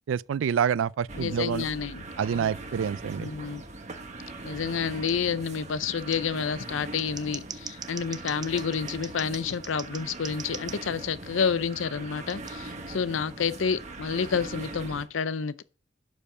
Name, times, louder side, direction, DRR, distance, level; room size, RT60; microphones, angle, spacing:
voice 1, 0.1-1.7 2.2-3.3, right 7 dB, 85° right, 0.3 m, -27 dB
sound 1, 1.1-15.1, right 2 dB, 40° right, 1.2 m, -41 dB
voice 2, 1.2-2.5 3.2-3.6 4.4-15.6, left 6 dB, 90° left, 0.5 m, -29 dB
Scissors, 5.1-5.2 6.1-6.2 6.8-10.8 12.3-12.5, right 6 dB, 20° right, 0.5 m, -41 dB
11.5 x 5.3 x 4.8 m
head